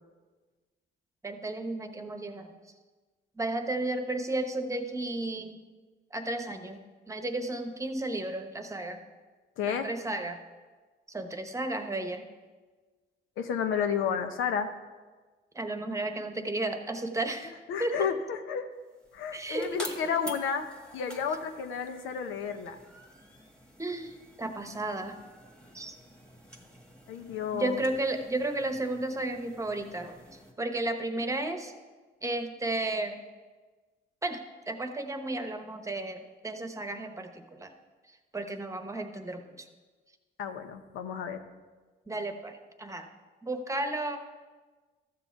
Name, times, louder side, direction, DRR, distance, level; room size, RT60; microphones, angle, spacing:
voice 1, 1.2-2.5 3.4-5.6 6.1-6.8 7.1-9.0 9.6-10.4 11.1-12.3 15.5-18.1 19.3-20.1 23.8-25.2 25.7-26.0 27.5-31.7 32.2-33.2 34.2-37.7 38.1-39.7 42.1-43.1 43.4-44.2, right 2 dB, 15° right, 6 dB, 1.0 m, -33 dB
voice 2, 9.6-9.9 13.4-14.7 17.7-18.7 19.1-20.7 20.9-22.8 27.1-27.8 40.4-41.4, left 7 dB, 90° left, 7 dB, 0.8 m, -31 dB
sound 1, 18.8-30.5, equal, 5° left, 1.5 m, -49 dB
13.5 x 7.0 x 4.5 m, 1.4 s
cardioid pair, 90°, 20 cm